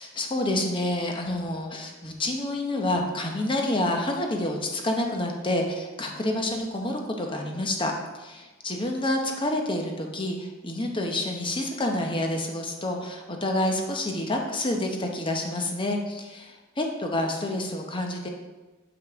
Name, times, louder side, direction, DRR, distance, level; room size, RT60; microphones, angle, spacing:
voice 1, 0.0-18.3, left 1 dB, 25° left, 2 dB, 0.7 m, -28 dB
6.7 x 5.3 x 3.5 m, 1.2 s
head